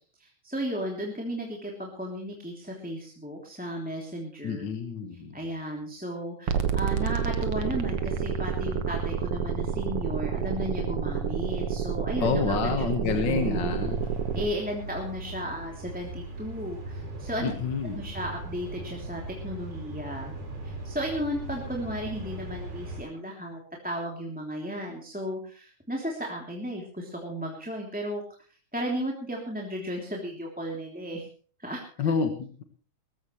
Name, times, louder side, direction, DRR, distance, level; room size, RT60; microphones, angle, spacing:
voice 1, 0.2-4.7 5.1-13.7 14.3-17.4 17.9-20.3 20.6-28.2 28.7-31.3 31.6-32.1, equal, 5° right, -1 dB, 2.7 m, -34 dB
voice 2, 4.4-5.3 12.2-14.0 17.4-18.0 32.0-32.6, left 5 dB, 45° left, 6 dB, 1.8 m, -28 dB
sound 1, 6.5-14.5, right 7 dB, 55° right, 1.9 m, -29 dB
sound 2, 13.8-23.0, right 2 dB, 85° right, 5.9 m, -39 dB
20.0 x 15.0 x 3.2 m, 0.42 s
omnidirectional pair, 3.5 m